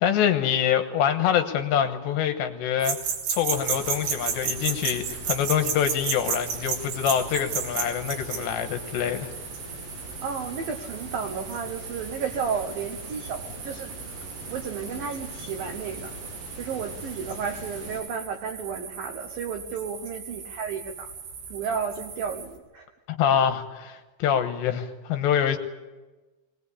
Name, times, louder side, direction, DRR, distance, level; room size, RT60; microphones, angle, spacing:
voice 1, 0.0-9.3 23.1-25.6, left 9 dB, 75° left, 7 dB, 3.0 m, -25 dB
sound 1, 2.8-22.6, right 7 dB, 65° right, 4.6 m, -35 dB
sound 2, 3.5-18.0, right 1 dB, 30° right, 6.8 m, -42 dB
voice 2, 10.2-13.9 14.5-16.1 16.6-21.1 21.5-22.9, right 6 dB, 90° right, 6 dB, 2.0 m, -32 dB
21.5 x 19.5 x 8.4 m, 1.2 s
omnidirectional pair, 5.8 m